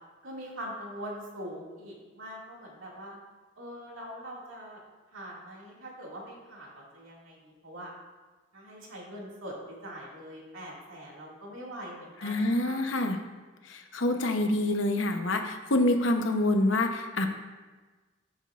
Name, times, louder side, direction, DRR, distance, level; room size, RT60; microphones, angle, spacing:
voice 1, 0.2-3.2 3.6-4.8 5.1-7.9 8.5-12.9, equal, 85° right, -3 dB, 2.2 m, -43 dB
voice 2, 12.2-13.2 13.7-17.3, left 1 dB, 70° left, 5 dB, 0.9 m, -26 dB
14.0 x 6.3 x 2.5 m, 1.3 s
head